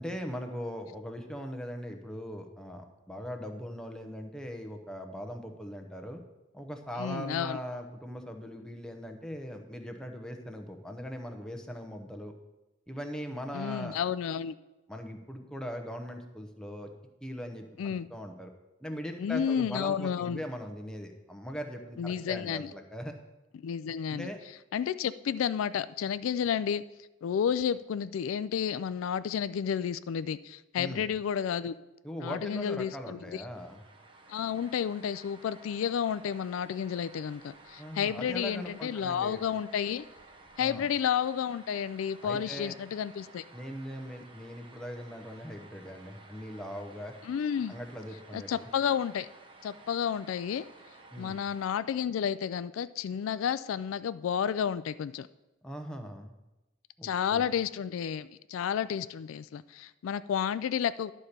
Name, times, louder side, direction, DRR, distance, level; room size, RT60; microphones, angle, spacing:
voice 1, 0.0-6.2 6.5-12.3 12.9-14.0 14.9-16.9 17.2-18.5 18.8-23.2 24.1-24.4 30.8-31.1 32.0-33.8 37.8-39.4 40.6-40.9 42.2-42.8 43.5-47.1 47.7-48.7 51.1-51.4 55.6-56.3 57.0-57.4, equal, 5° left, 4 dB, 0.8 m, -40 dB
voice 2, 7.0-7.6 13.5-14.6 17.8-18.1 19.2-20.4 22.0-22.7 23.6-24.3 24.7-26.8 27.2-31.8 32.2-33.4 34.3-40.0 40.6-43.4 47.2-47.8 48.3-49.3 49.6-50.7 51.2-55.3 57.0-61.1, left 8 dB, 90° left, 15 dB, 0.3 m, -31 dB
sound 1, 33.5-51.8, right 3 dB, 25° right, 0.9 m, -54 dB
11.5 x 4.3 x 6.6 m, 1.0 s
head